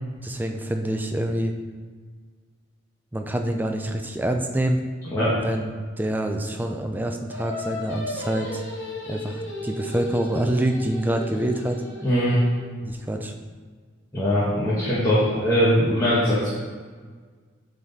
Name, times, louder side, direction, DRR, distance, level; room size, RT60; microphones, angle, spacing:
voice 1, 0.2-1.5 3.1-4.8 5.3-8.6 9.1-11.8 12.8-13.3, right 1 dB, 10° right, 4 dB, 0.4 m, -26 dB
Singing, 7.3-12.7, equal, 70° left, 1.9 m, -35 dB
voice 2, 12.0-12.4 14.1-16.5, equal, 15° left, -12 dB, 1.3 m, -21 dB
7.7 x 4.0 x 4.1 m, 1.6 s
head